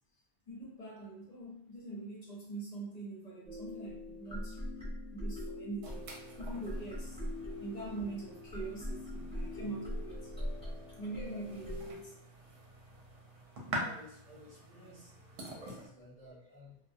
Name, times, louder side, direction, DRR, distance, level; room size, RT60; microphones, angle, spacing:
voice 1, 0.5-4.6 5.1-6.1 6.4-7.2 7.6-10.3 11.0-12.1, right 2 dB, 40° left, -5 dB, 0.7 m, -43 dB
sound 1, 3.5-11.9, left 1 dB, 5° left, 0.9 m, -42 dB
sound 2, 5.8-15.9, right 1 dB, 80° right, 1.0 m, -46 dB
voice 2, 13.6-16.8, left 1 dB, 35° right, -6 dB, 0.8 m, -54 dB
2.3 x 2.1 x 2.6 m, 0.72 s
omnidirectional pair, 1.3 m